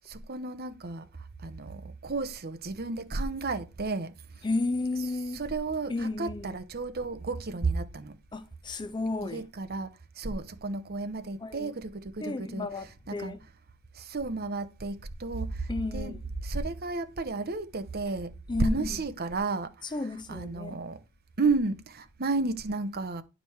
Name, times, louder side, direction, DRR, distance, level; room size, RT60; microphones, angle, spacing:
voice 1, 0.1-1.1 1.4-4.1 5.3-8.1 9.2-13.4 13.9-16.1 16.4-18.3 18.6-20.0 20.3-21.0 21.4-23.2, right 3 dB, 45° right, 1.0 m, -32 dB
voice 2, 4.4-5.4 5.9-6.5 8.3-9.5 11.4-11.7 12.2-13.4 15.7-16.2 18.5-18.9 19.9-20.7, left 2 dB, 20° left, 0.4 m, -32 dB
10.5 x 5.2 x 4.6 m
head